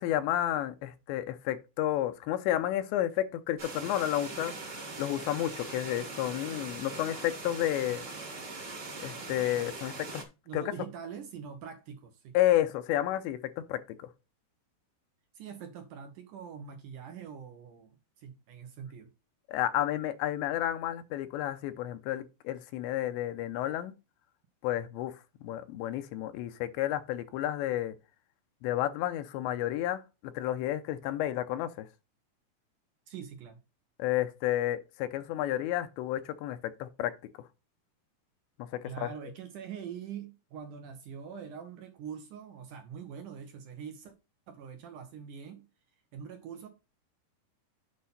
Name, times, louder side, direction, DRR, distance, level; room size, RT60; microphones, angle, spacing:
voice 1, 0.0-8.0 9.0-10.2 10.5-10.6 12.3-13.4 13.7-14.0 19.5-23.9 24.6-28.0 28.6-31.9 34.0-37.1 38.7-39.1, left 13 dB, 90° left, 3.0 m, -31 dB
sound 1, 3.6-10.2, right 3 dB, 45° right, 1.4 m, -41 dB
voice 2, 10.5-12.4 15.3-19.1 33.1-33.6 38.8-44.1 44.5-45.6 46.1-46.7, right 7 dB, 70° right, 1.9 m, -44 dB
8.4 x 5.6 x 4.2 m
omnidirectional pair, 5.1 m